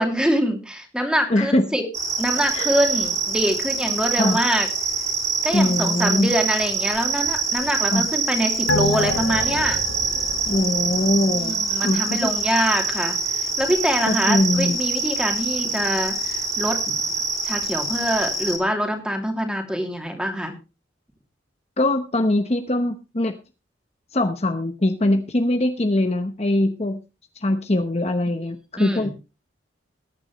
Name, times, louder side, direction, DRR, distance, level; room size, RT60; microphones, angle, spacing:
voice 1, 0.0-1.8 2.2-4.7 5.4-9.8 11.3-17.0 17.4-20.6 28.8-29.1, equal, 5° right, 4 dB, 2.7 m, -24 dB
voice 2, 1.3-1.6 2.5-2.7 4.2-4.4 5.5-6.3 7.9-8.0 10.5-12.2 14.0-14.7 21.8-23.3 24.1-27.0 27.4-29.1, left 1 dB, 35° left, 7 dB, 0.9 m, -22 dB
sound 1, 1.9-18.6, right 4 dB, 20° right, 3.7 m, -25 dB
sound 2, 8.7-11.6 11.9-12.0, left 2 dB, 85° left, 1.5 m, -27 dB
20.5 x 9.7 x 3.1 m, 0.29 s
head